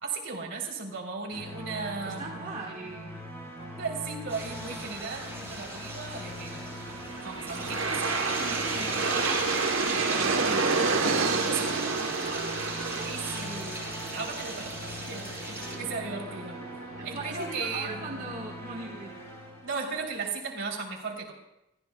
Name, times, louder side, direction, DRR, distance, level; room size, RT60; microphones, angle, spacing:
voice 1, 0.0-2.6 3.6-6.6 7.2-7.9 11.5-12.1 13.0-13.8 14.1-16.6 17.0-18.2 19.6-21.3, right 4 dB, 60° right, 0 dB, 3.3 m, -36 dB
sound 1, 1.3-20.2, equal, 15° left, 4.3 m, -42 dB
voice 2, 2.0-3.2 7.7-13.5 17.0-19.2, right 3 dB, 35° right, -2 dB, 1.5 m, -41 dB
sound 2, 4.3-15.8, right 1 dB, 10° right, 5.6 m, -37 dB
Aircraft, 6.6-17.7, right 4 dB, 80° right, 1.1 m, -30 dB
29.5 x 14.5 x 2.3 m, 0.88 s
head